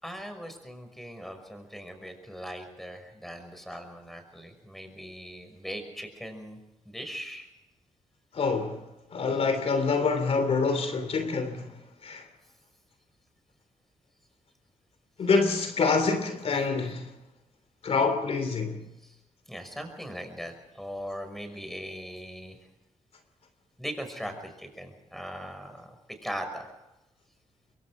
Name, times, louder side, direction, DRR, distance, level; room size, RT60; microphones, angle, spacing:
voice 1, 0.0-6.6 6.9-7.5 19.0-19.2 19.5-22.6 23.8-26.7, equal, ahead, 5.8 m, -40 dB
voice 2, 8.3-12.3 15.2-17.1 17.8-18.8, left 4 dB, 55° left, 3.1 m, -26 dB
27.0 x 22.5 x 4.9 m
cardioid pair, 100°, 12 cm